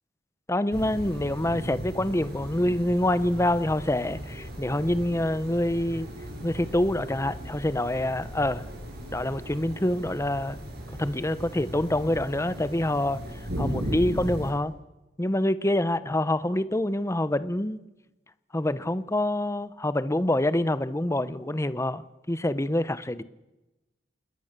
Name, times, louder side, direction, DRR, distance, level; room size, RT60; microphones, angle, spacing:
voice 1, 0.5-6.1 6.4-8.7 9.1-10.6 11.0-13.2 13.6-14.7 15.2-17.8 18.5-23.2, left 1 dB, 15° left, 0.9 m, -26 dB
sound 1, 0.7-14.5, equal, 60° right, 8.0 m, -37 dB
28.0 x 20.5 x 6.7 m
head